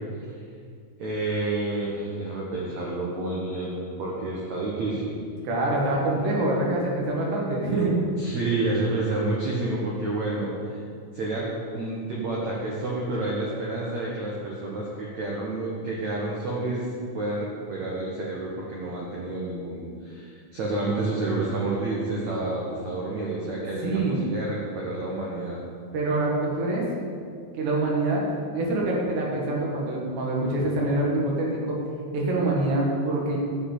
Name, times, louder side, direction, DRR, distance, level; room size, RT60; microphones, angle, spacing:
voice 1, 1.0-5.1 8.2-10.8 11.1-16.9 17.1-25.6, right 2 dB, 90° right, -4 dB, 1.6 m, -29 dB
voice 2, 5.5-8.0 23.8-24.2 25.9-26.8 27.5-28.2 28.5-31.8 32.1-33.4, right 2 dB, 70° right, -3 dB, 3.7 m, -25 dB
11.5 x 5.4 x 8.4 m, 2.2 s
omnidirectional pair, 5.4 m